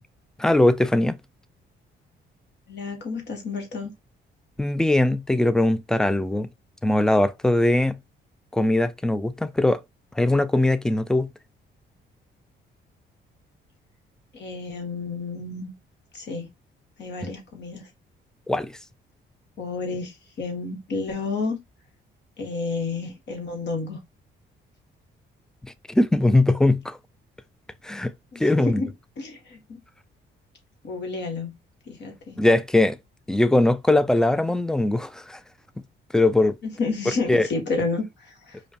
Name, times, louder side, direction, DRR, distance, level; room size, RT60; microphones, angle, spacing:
voice 1, 0.4-1.2 4.6-6.5 6.8-8.0 8.5-9.8 10.2-11.3 18.5-18.8 25.6-27.0 27.8-28.8 32.4-33.0 33.3-35.4 36.1-36.6 37.3-37.5, left 1 dB, 5° left, 0.4 m, -21 dB
voice 2, 2.7-3.9 14.3-15.7 16.1-16.5 17.0-17.9 19.6-21.6 22.4-24.0 28.3-28.9 29.2-29.8 30.8-31.5 31.9-32.4 36.6-38.6, left 3 dB, 60° left, 1.4 m, -30 dB
5.0 x 2.2 x 2.8 m
cardioid pair, 90°, 20 cm